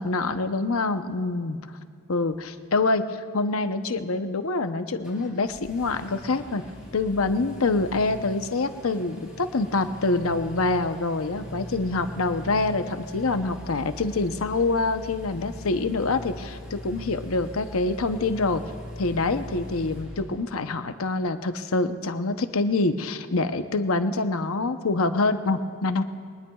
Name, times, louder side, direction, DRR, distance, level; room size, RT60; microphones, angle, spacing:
voice 1, 0.0-1.6 2.1-6.6 6.9-18.6 19.0-26.0, left 3 dB, 80° left, 9 dB, 0.8 m, -26 dB
Engine, 5.0-20.7, equal, 5° right, 4.4 m, -41 dB
23.5 x 19.5 x 2.4 m, 2.3 s
head